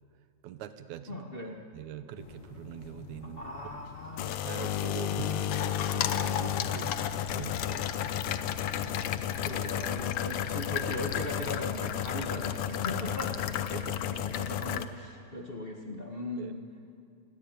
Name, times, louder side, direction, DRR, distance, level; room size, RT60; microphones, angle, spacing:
voice 1, 0.4-1.2 1.7-3.4 3.7-3.8 4.5-5.3 5.9-7.1 7.3-7.9 13.7-14.0 14.4-14.6 15.3-15.4 16.4-16.5, right 10 dB, 70° right, 11 dB, 2.2 m, -43 dB
voice 2, 1.1-1.6 3.2-4.7 5.1-5.6 9.4-16.6, left 1 dB, 30° left, 1 dB, 0.9 m, -39 dB
sound 1, 2.2-14.8, left 10 dB, 70° left, 1.4 m, -32 dB
28.0 x 19.5 x 9.2 m, 2.5 s
omnidirectional pair, 3.6 m